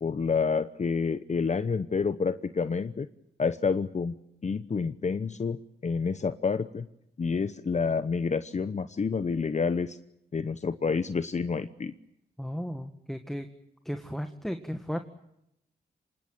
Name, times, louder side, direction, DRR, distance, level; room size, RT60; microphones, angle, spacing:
voice 1, 0.0-3.1 3.4-4.1 4.4-6.9 7.2-10.0 10.3-11.9, left 5 dB, 40° left, 12 dB, 0.9 m, -28 dB
voice 2, 12.4-13.5 13.9-15.0, equal, ahead, 7 dB, 1.8 m, -34 dB
26.0 x 20.0 x 9.2 m, 0.81 s
cardioid pair, 70°, 18 cm